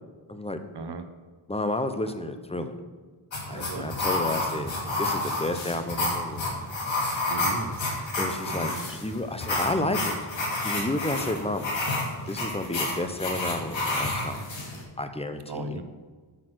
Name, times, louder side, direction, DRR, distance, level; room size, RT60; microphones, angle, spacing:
voice 1, 1.5-2.8 3.5-4.7 5.0-6.6 8.2-10.3 10.6-11.7 12.3-14.5 15.0-15.8, left 2 dB, 10° left, 8 dB, 0.8 m, -31 dB
sound 1, 3.3-14.8, left 2 dB, 65° left, 2.6 m, -30 dB
voice 2, 3.5-4.0 7.3-8.0 8.5-9.0 15.5-15.8, right 3 dB, 55° right, 8 dB, 1.0 m, -36 dB
8.3 x 6.7 x 6.3 m, 1.5 s
wide cardioid pair, 90°, 49 cm